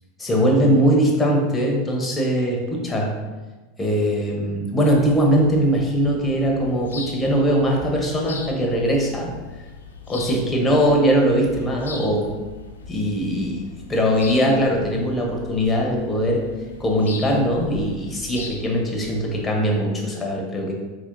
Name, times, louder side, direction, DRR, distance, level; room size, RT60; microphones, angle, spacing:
voice 1, 0.2-3.2 3.8-9.4 10.1-12.3 12.9-16.5 16.8-20.7, equal, 15° left, 0 dB, 1.0 m, -21 dB
sound 1, 4.8-19.4, left 4 dB, 90° left, 0.4 m, -39 dB
4.3 x 3.1 x 2.6 m, 1.2 s
hypercardioid pair, 90°, 0 cm